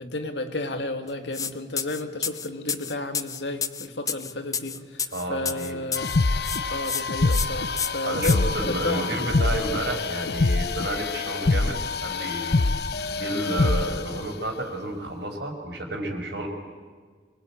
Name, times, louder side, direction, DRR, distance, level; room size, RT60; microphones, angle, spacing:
voice 1, 0.0-6.2 6.7-9.2 14.1-14.3, left 2 dB, 75° left, 6 dB, 2.2 m, -32 dB
sound 1, 1.3-1.5 1.8-6.2 6.4-7.0 7.3-7.5 7.8-8.4, left 6 dB, 20° left, 0.6 m, -29 dB
voice 2, 5.1-5.8 8.0-12.6 13.1-16.5, right 1 dB, 70° right, 2 dB, 5.2 m, -31 dB
sound 2, 6.0-14.2, left 3 dB, 60° left, 0.7 m, -25 dB
26.5 x 20.0 x 8.9 m, 1.5 s
head